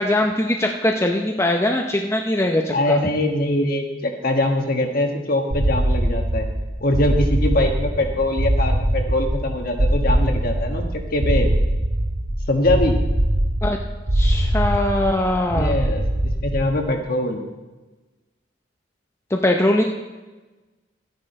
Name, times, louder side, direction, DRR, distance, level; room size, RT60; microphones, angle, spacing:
voice 1, 0.0-3.0 13.6-13.8 14.1-15.8 19.3-19.8, left 1 dB, 15° left, 2 dB, 0.6 m, -21 dB
voice 2, 2.7-6.5 6.8-11.5 12.5-13.0 15.5-17.4, left 1 dB, 45° left, 4 dB, 1.4 m, -22 dB
sound 1, 5.5-16.9, right 1 dB, 50° right, 1.1 m, -22 dB
13.0 x 9.9 x 4.3 m, 1.2 s
head